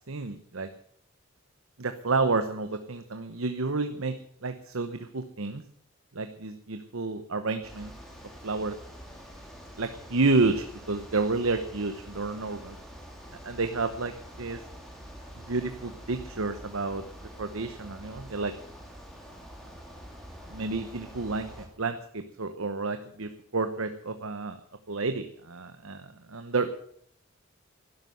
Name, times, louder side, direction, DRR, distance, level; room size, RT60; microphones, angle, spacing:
voice 1, 0.1-0.7 1.8-4.1 4.4-5.6 6.1-7.9 8.4-8.7 9.8-12.7 13.4-14.1 14.4-14.6 15.4-18.5 20.5-21.5 21.8-24.6 24.9-26.7, right 3 dB, 75° right, 9 dB, 0.9 m, -30 dB
sound 1, 7.6-21.7, equal, ahead, 2.8 m, -46 dB
12.0 x 11.0 x 7.9 m, 0.63 s
head